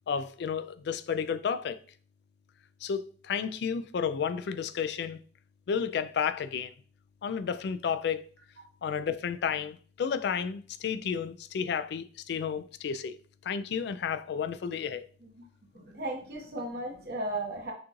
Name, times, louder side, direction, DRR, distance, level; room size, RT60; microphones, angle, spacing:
voice 1, 0.1-1.8 2.8-5.2 5.7-6.7 7.2-8.3 8.8-13.2 13.4-15.1, left 7 dB, 65° left, 0.3 m, -32 dB
voice 2, 15.7-17.7, right 2 dB, 60° right, 1.2 m, -36 dB
6.1 x 2.4 x 3.0 m
head